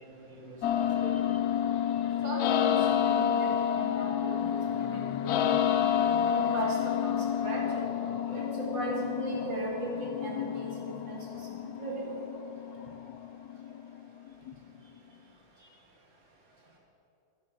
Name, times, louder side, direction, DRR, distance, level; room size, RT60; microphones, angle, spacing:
voice 1, 0.0-1.4 1.7-2.2 7.6-8.4 12.7-13.2 14.5-14.9 15.3-15.8, right 1 dB, 30° right, -2 dB, 1.1 m, -49 dB
sound 1, 0.6-14.5, left 9 dB, 70° left, 0.9 m, -29 dB
voice 2, 2.2-4.5 4.7-5.9 6.3-7.6 8.3-11.4 11.8-12.2, right 2 dB, 80° right, -2 dB, 2.7 m, -37 dB
11.5 x 7.2 x 6.5 m, 2.7 s
omnidirectional pair, 2.0 m